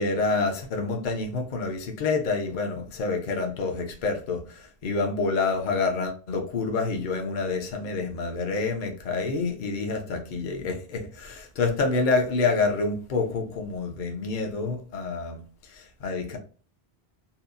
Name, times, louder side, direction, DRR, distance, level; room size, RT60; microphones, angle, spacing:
voice 1, 0.0-16.4, left 3 dB, 55° left, 0.7 m, -28 dB
2.7 x 2.0 x 2.4 m
omnidirectional pair, 1.1 m